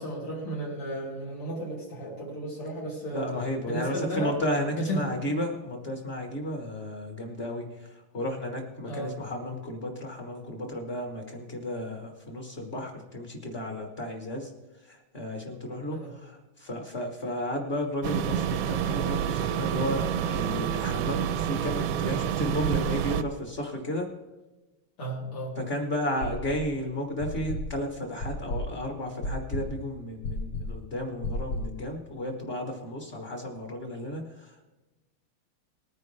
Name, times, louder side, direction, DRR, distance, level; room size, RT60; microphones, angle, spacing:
voice 1, 0.0-3.3 3.7-4.3 4.8-5.1 8.9-9.1 15.9-16.1 25.0-25.6, right 1 dB, 90° left, -5 dB, 4.0 m, -34 dB
voice 2, 3.1-14.5 14.9-24.1 25.6-34.6, left 1 dB, 35° left, 2 dB, 1.2 m, -33 dB
sound 1, 18.0-23.2, right 10 dB, 80° right, 1.4 m, -28 dB
sound 2, 26.2-26.8 27.2-31.8, left 1 dB, 75° left, 1.7 m, -33 dB
19.5 x 9.7 x 3.3 m, 1.1 s
omnidirectional pair, 2.4 m